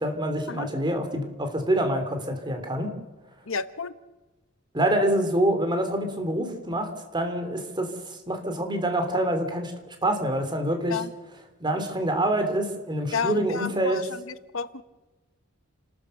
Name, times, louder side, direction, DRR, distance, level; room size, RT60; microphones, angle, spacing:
voice 1, 0.0-2.9 4.7-9.7 10.0-11.0 11.6-14.0, right 1 dB, 25° right, 6 dB, 3.2 m, -26 dB
voice 2, 3.5-3.9 10.9-11.1 13.1-14.2 14.5-14.8, left 5 dB, 75° left, 13 dB, 0.9 m, -31 dB
30.0 x 13.5 x 6.6 m, 1.1 s
head